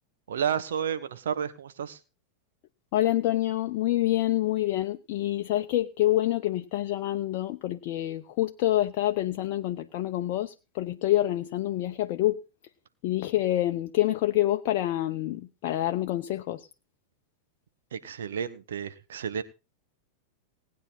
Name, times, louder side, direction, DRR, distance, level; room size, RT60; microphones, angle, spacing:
voice 1, 0.3-2.0 17.9-19.4, right 8 dB, 65° right, 1.4 m, -31 dB
voice 2, 2.9-12.4 13.0-16.7, left 14 dB, 45° left, 0.8 m, -27 dB
19.0 x 9.5 x 4.1 m
figure-of-eight pair, 90°, 0 cm